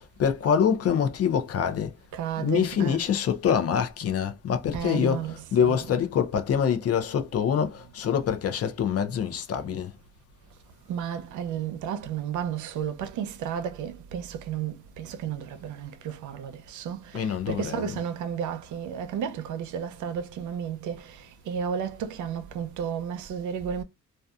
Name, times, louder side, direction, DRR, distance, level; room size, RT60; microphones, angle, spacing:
voice 1, 0.2-1.9 2.4-9.9 17.1-17.9, left 8 dB, 50° left, 0.6 m, -25 dB
voice 2, 2.1-3.1 4.7-5.9 10.9-23.8, right 8 dB, 75° right, 0.6 m, -33 dB
2.7 x 2.3 x 2.3 m
cardioid pair, 90°, 30 cm